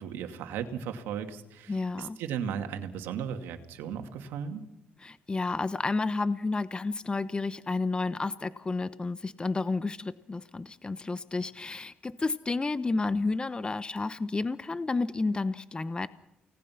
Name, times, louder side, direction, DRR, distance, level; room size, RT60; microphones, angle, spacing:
voice 1, 0.0-4.6, right 8 dB, 90° right, 6 dB, 2.3 m, -36 dB
voice 2, 1.7-2.2 5.0-16.1, left 3 dB, 25° left, 14 dB, 1.0 m, -31 dB
29.5 x 19.0 x 6.0 m, 0.85 s
cardioid pair, 70°, 4 cm